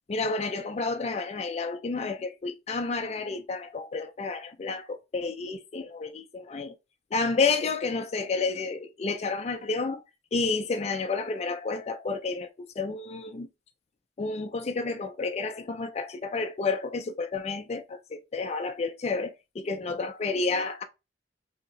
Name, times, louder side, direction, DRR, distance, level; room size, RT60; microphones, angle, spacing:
voice 1, 0.1-6.8 7.1-10.0 10.3-13.5 14.2-20.8, left 4 dB, 35° left, 0.4 m, -30 dB
2.8 x 2.6 x 3.8 m
head